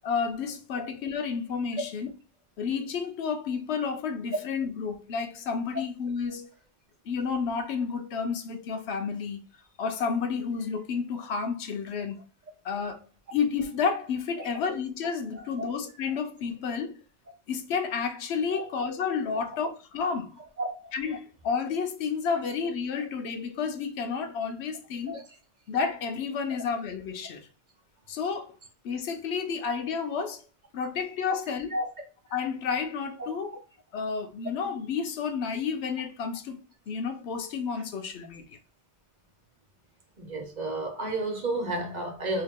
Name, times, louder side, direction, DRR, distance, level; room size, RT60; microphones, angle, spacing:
voice 1, 0.0-2.1 2.6-6.5 7.1-9.4 9.8-12.2 12.6-13.0 13.3-17.0 17.5-20.4 20.9-25.2 25.7-27.5 28.1-28.5 28.8-30.4 30.7-31.7 32.3-33.6 33.9-36.6 36.9-38.6, left 6 dB, 85° left, 0.9 m, -31 dB
voice 2, 20.6-20.9 25.1-25.2 31.7-31.9 33.2-33.3 40.2-42.4, right 2 dB, 45° right, 0.9 m, -31 dB
2.9 x 2.8 x 3.6 m
omnidirectional pair, 1.1 m